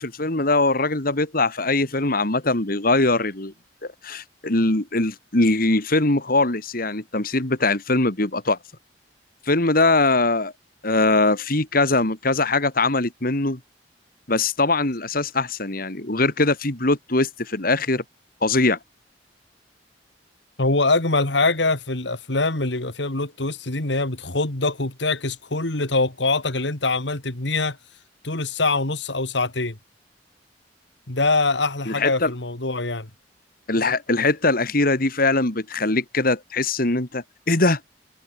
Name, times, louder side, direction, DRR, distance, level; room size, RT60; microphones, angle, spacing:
voice 1, 0.0-3.5 3.8-8.6 9.5-10.5 10.8-13.6 14.3-18.0 18.4-18.8 31.9-32.3 33.7-37.8, left 2 dB, 55° left, 2.7 m, -21 dB
voice 2, 20.6-27.8 28.2-29.8 31.1-33.1, left 3 dB, 75° left, 2.6 m, -23 dB
head